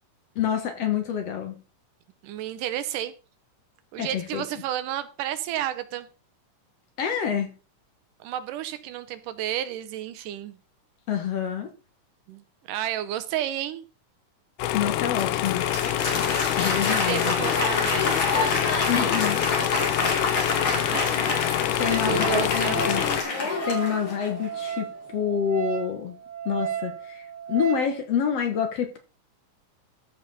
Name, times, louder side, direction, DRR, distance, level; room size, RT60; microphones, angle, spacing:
voice 1, 0.4-1.6 4.0-4.5 7.0-7.5 11.1-11.7 14.7-15.7 16.6-17.3 18.9-19.5 20.7-21.0 21.8-23.0 23.7-26.2 26.5-29.0, left 8 dB, 60° left, 6 dB, 2.0 m, -27 dB
voice 2, 2.2-3.1 3.9-6.1 8.2-10.6 12.3-13.8 16.9-18.5 19.6-20.1 20.9-21.5 21.9-22.8, right 12 dB, 85° right, 11 dB, 2.4 m, -32 dB
sound 1, 14.6-23.2, left 14 dB, 85° left, 2.1 m, -26 dB
Applause, 14.9-24.5, left 3 dB, 40° left, 3.0 m, -27 dB
Wind instrument woodwind instrument, 21.8-27.9, right 9 dB, 20° right, 1.8 m, -34 dB
14.0 x 5.2 x 4.1 m, 0.34 s
omnidirectional pair, 3.7 m